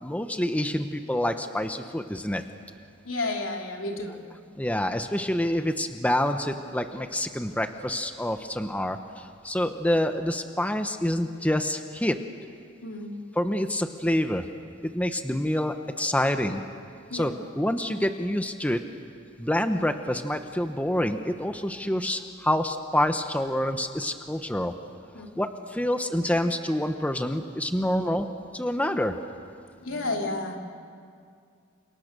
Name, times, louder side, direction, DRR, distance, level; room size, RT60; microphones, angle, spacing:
voice 1, 0.0-2.4 4.5-12.2 13.3-14.5 14.8-16.6 17.1-18.8 19.4-24.7 25.4-28.3 28.5-29.2, left 1 dB, 5° left, 7 dB, 1.0 m, -27 dB
voice 2, 3.0-4.2 12.8-13.1 17.1-17.3 21.8-22.0 25.1-25.3 29.8-30.6, left 2 dB, 80° left, 1 dB, 3.4 m, -31 dB
29.5 x 27.5 x 6.8 m, 2.3 s
head